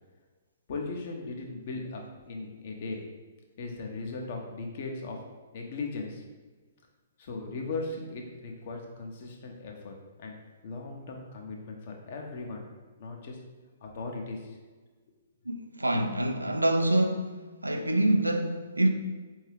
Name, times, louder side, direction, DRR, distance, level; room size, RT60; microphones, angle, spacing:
voice 1, 0.7-3.0 3.6-5.2 5.5-6.2 7.2-10.3 10.6-12.6 13.0-13.4 13.8-14.6, left 3 dB, 50° left, 1 dB, 0.8 m, -38 dB
voice 2, 15.8-17.3 17.6-18.9, right 1 dB, 85° right, 5 dB, 0.4 m, -25 dB
4.5 x 2.7 x 3.4 m, 1.4 s
figure-of-eight pair, 120°, 0 cm